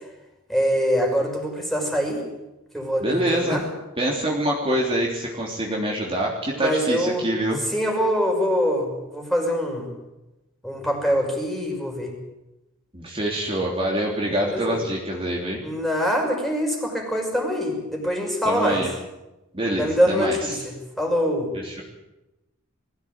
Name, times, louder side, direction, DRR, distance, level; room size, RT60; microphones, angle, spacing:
voice 1, 0.5-2.2 2.7-3.7 6.5-7.3 7.7-9.9 10.6-12.1 14.3-14.8 15.6-18.9 19.8-21.5, equal, ahead, 1 dB, 5.7 m, -24 dB
voice 2, 3.0-3.6 4.0-7.6 12.9-15.6 18.4-18.9 19.5-20.6 21.6-21.8, right 1 dB, 25° right, -2 dB, 3.3 m, -25 dB
21.5 x 16.0 x 8.9 m, 0.99 s
head